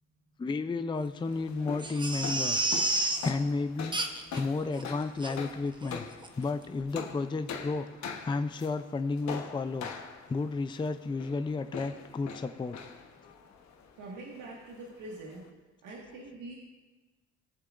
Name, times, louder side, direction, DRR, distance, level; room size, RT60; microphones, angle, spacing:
voice 1, 0.4-4.0 4.3-6.1 6.4-9.9 10.3-12.8, left 3 dB, 15° left, 10 dB, 0.4 m, -32 dB
sound 1, 1.2-15.5, left 6 dB, 65° left, 1.2 m, -44 dB
Crying sobbing, 1.8-3.3 3.9-4.4 4.8-4.9 5.2-5.3 5.8-6.0 6.2-6.3, right 2 dB, 15° right, 0.9 m, -30 dB
voice 2, 14.0-15.4 15.8-16.6, right 2 dB, 90° right, -3 dB, 1.9 m, -44 dB
18.5 x 7.6 x 2.5 m, 1.2 s
cardioid pair, 90°, 30 cm